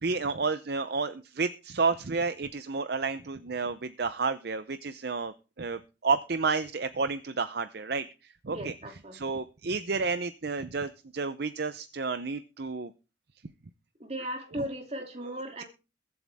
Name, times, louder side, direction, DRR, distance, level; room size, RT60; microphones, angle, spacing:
voice 1, 0.0-8.1 8.4-8.7 9.1-12.9 14.6-14.7, right 4 dB, 55° right, 12 dB, 0.6 m, -31 dB
voice 2, 8.5-9.2 14.0-15.6, equal, 35° right, 3 dB, 2.8 m, -37 dB
22.0 x 7.9 x 3.6 m, 0.31 s
head